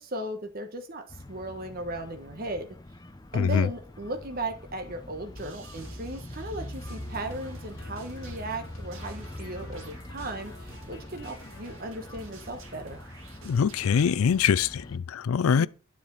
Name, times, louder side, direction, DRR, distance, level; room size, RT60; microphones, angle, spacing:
voice 1, 0.0-2.7 3.3-13.0 15.6-15.7, right 1 dB, 45° right, 1.3 m, -36 dB
sound 1, 1.1-15.0, left 1 dB, 20° left, 0.7 m, -43 dB
voice 2, 3.4-3.7 13.4-15.7, left 7 dB, 75° left, 0.4 m, -23 dB
sound 2, 4.9-5.1 5.4-5.5 5.8-6.0 6.3-6.5 6.8-7.0 7.3-7.5 7.8-12.4, left 1 dB, 60° left, 3.3 m, -50 dB
sound 3, 5.4-14.1, right 3 dB, 70° right, 2.5 m, -51 dB
10.0 x 7.6 x 4.0 m
head